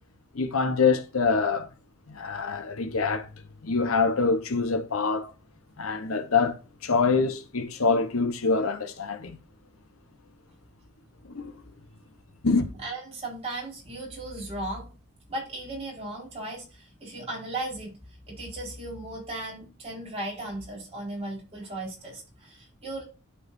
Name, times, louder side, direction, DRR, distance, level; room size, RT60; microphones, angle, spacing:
voice 1, 0.3-1.7 2.1-5.3 5.8-9.4 11.2-11.5 12.4-12.7, left 4 dB, 75° left, 1.0 m, -25 dB
voice 2, 12.8-14.9 15.3-18.0 18.3-23.0, right 2 dB, 30° right, 4.4 m, -36 dB
12.5 x 4.8 x 2.6 m
head